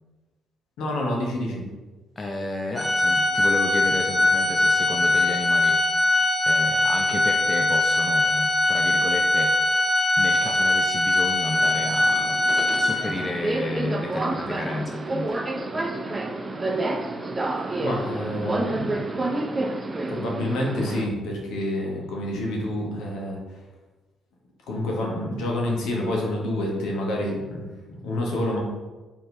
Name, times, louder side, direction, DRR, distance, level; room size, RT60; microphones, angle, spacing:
voice 1, 0.8-1.6 17.8-19.2 20.1-23.4 24.7-27.7 28.0-28.6, left 1 dB, 65° left, -1 dB, 1.0 m, -28 dB
voice 2, 2.2-5.9 6.5-9.6 10.2-12.4 12.8-15.4, left 2 dB, 30° left, 2 dB, 0.5 m, -32 dB
Organ, 2.8-13.4, left 2 dB, 5° right, 0.9 m, -21 dB
Subway metro underground, 11.5-21.1, right 2 dB, 30° right, 0.5 m, -29 dB
4.4 x 3.6 x 3.2 m, 1.2 s
figure-of-eight pair, 45°, 0 cm